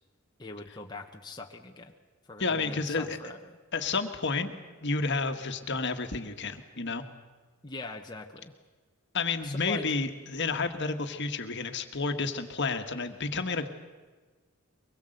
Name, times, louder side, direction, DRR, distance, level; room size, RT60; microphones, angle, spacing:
voice 1, 0.4-1.9 2.3-3.6 7.6-8.5 9.4-9.9, left 3 dB, 20° left, 2 dB, 1.1 m, -42 dB
voice 2, 2.4-3.2 3.7-4.5 4.8-7.0 9.1-13.7, left 4 dB, 55° left, 6 dB, 1.6 m, -30 dB
23.5 x 21.0 x 7.9 m, 1.3 s
head